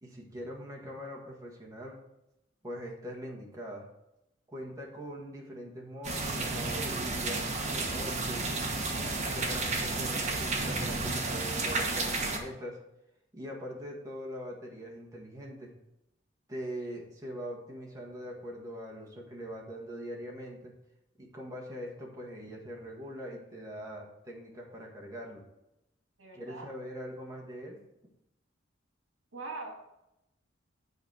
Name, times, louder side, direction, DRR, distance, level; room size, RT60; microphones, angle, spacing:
voice 1, 0.0-2.0 2.6-3.8 4.5-8.5 9.3-12.8 13.3-15.7 16.5-20.7 21.2-25.4 26.3-27.8, equal, 20° right, -2 dB, 1.7 m, -42 dB
sound 1, 6.0-12.4, right 3 dB, 40° right, 1.3 m, -32 dB
voice 2, 26.2-26.7 29.3-29.7, right 3 dB, 80° right, 1 dB, 1.9 m, -41 dB
8.1 x 4.2 x 6.3 m, 0.86 s
head